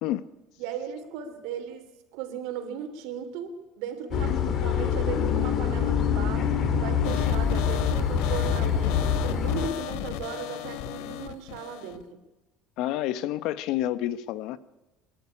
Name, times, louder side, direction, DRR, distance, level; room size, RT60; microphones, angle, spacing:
voice 1, 0.6-12.2, right 7 dB, 75° right, 7 dB, 3.1 m, -37 dB
sound 1, 4.1-9.7, left 7 dB, 40° left, 1.9 m, -25 dB
sound 2, 7.0-12.0, left 12 dB, 80° left, 1.0 m, -36 dB
voice 2, 12.8-14.6, left 13 dB, 60° left, 15 dB, 0.9 m, -29 dB
24.5 x 11.5 x 9.7 m, 1.1 s
cardioid pair, 165°, 0 cm